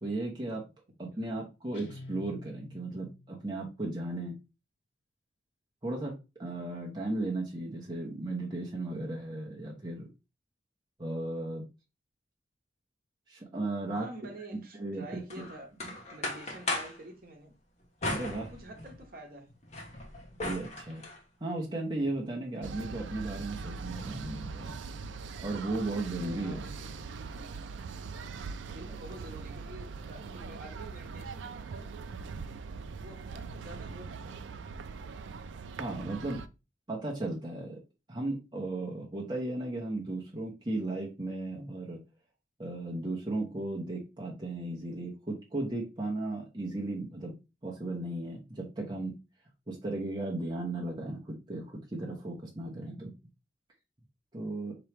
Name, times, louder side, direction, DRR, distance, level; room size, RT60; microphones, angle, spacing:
voice 1, 0.0-0.6 1.0-4.3 5.8-6.1 6.4-10.1 11.0-11.6 13.3-14.1 14.8-15.0 15.4-15.5 18.0-18.5 20.4-21.0 21.4-24.8 25.4-26.6 35.8-36.4 36.9-37.8 38.1-42.0 42.6-47.3 47.6-49.1 49.7-53.1 54.3-54.7, right 2 dB, 25° right, 0.8 m, -35 dB
voice 2, 0.9-1.4 13.9-15.7 16.1-17.5 18.5-19.5 26.3-27.5 28.7-32.1 32.9-34.7, right 1 dB, 50° right, 1.0 m, -48 dB
Guitar, 1.7-3.4, left 1 dB, 70° left, 1.0 m, -47 dB
sound 1, 15.3-17.0 18.0-19.1 19.5-21.2, left 2 dB, 35° left, 0.9 m, -37 dB
sound 2, 22.6-36.5, right 5 dB, 70° right, 0.4 m, -41 dB
4.5 x 2.9 x 3.3 m
head